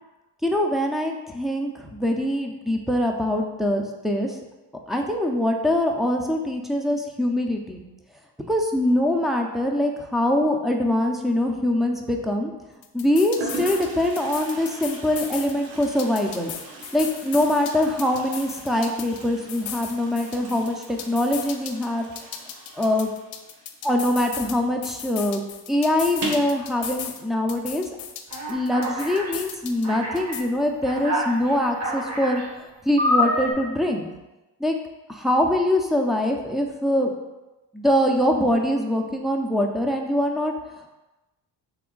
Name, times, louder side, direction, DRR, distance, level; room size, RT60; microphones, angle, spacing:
voice 1, 0.4-4.4 4.9-7.8 8.5-12.5 12.9-16.5 16.9-22.1 22.8-23.1 23.8-25.4 25.7-27.9 28.5-34.1 34.6-34.8 35.1-37.1 37.7-40.9, left 1 dB, ahead, 1 dB, 0.3 m, -23 dB
Toilet flush, 11.8-12.3 13.0-13.1 13.4-24.7 24.9-25.0 25.3-25.4 26.1-26.6, right 3 dB, 70° right, 1.1 m, -39 dB
sound 1, 12.8-13.9 14.2-15.5 15.8-19.2 19.5-21.9 22.2-24.5 24.8-27.2 27.5-29.9 30.2-30.4, left 9 dB, 75° left, 0.6 m, -36 dB
Alarm, 28.3-29.3 29.8-30.3 30.8-32.5 33.0-33.5, left 1 dB, 35° right, 0.9 m, -26 dB
3.4 x 3.0 x 3.7 m, 1.1 s
cardioid pair, 85°, 45 cm